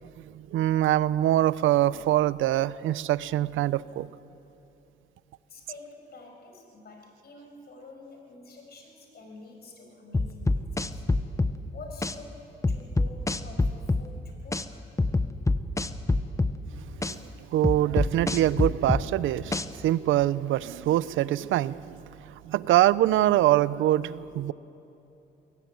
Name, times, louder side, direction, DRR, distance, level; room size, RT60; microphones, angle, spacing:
voice 1, 0.3-4.1 16.7-22.0 22.4-24.5, right 14 dB, 80° right, 0.6 m, -24 dB
voice 2, 5.5-11.0 11.7-14.9, left 3 dB, 55° left, 5.7 m, -48 dB
sound 1, 10.1-11.6 12.0-12.1 12.6-14.1 14.5-14.6 15.0-16.6 17.0-17.1 17.6-19.1 19.5-19.7, left 2 dB, 15° left, 0.9 m, -25 dB
22.0 x 15.5 x 9.2 m
cardioid pair, 90°, 20 cm